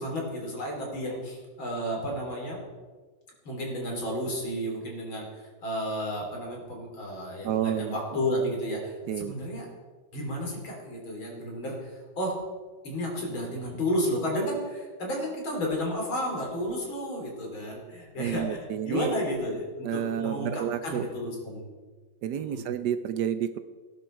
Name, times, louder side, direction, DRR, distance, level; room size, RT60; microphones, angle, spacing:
voice 1, 0.0-2.6 3.5-5.3 5.6-9.7 10.1-11.8 12.2-12.4 12.8-21.7 22.3-22.6, equal, 85° left, 0 dB, 4.4 m, -32 dB
voice 2, 7.4-8.2 9.1-9.3 18.2-19.2 19.8-21.0 22.2-23.6, right 10 dB, 70° right, 11 dB, 1.1 m, -30 dB
18.5 x 10.5 x 4.5 m, 1.4 s
omnidirectional pair, 2.1 m